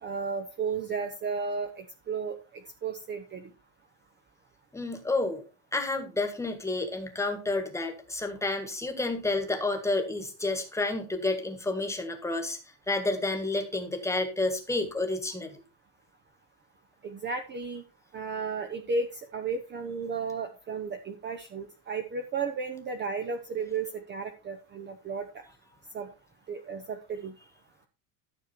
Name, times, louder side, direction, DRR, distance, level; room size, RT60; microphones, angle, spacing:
voice 1, 0.0-3.5 17.0-17.8 18.1-25.4 25.9-26.1 26.5-27.4, right 5 dB, 20° right, 7 dB, 0.8 m, -34 dB
voice 2, 4.7-5.4 5.7-12.6 12.9-15.5, left 2 dB, 5° left, 5 dB, 1.6 m, -30 dB
13.0 x 6.6 x 4.3 m, 0.31 s
cardioid pair, 165°, 48 cm